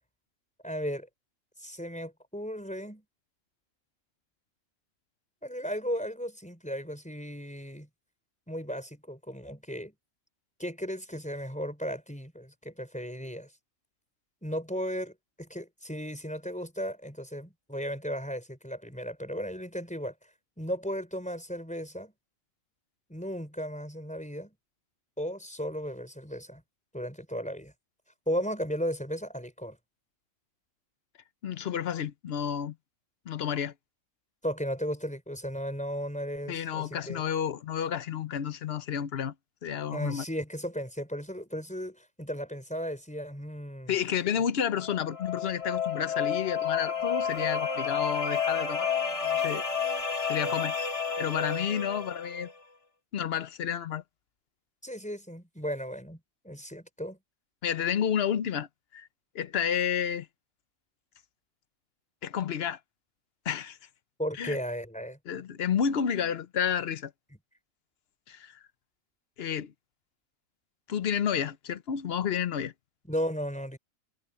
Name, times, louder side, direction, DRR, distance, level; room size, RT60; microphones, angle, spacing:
voice 1, 0.6-1.1 1.6-3.0 5.4-7.9 8.5-9.9 10.6-13.5 14.4-15.1 15.4-20.3 20.6-22.1 23.1-24.5 25.2-26.6 26.9-27.7 28.3-29.8 34.4-37.2 39.9-43.9 54.8-57.2 64.2-65.2 73.1-73.8, equal, 5° left, 4.3 m, -35 dB
voice 2, 31.4-32.7 33.3-33.7 36.5-39.3 39.6-40.2 43.9-48.9 49.2-49.6 50.3-50.7 51.2-52.5 53.1-54.0 57.6-59.1 59.3-60.3 62.2-62.8 63.4-63.8 64.4-64.6 65.3-67.1 68.3-68.5 69.4-69.7 70.9-72.7, left 8 dB, 55° left, 1.0 m, -30 dB
sound 1, 44.8-52.5, left 6 dB, 25° left, 1.2 m, -31 dB
omnidirectional pair, 1.4 m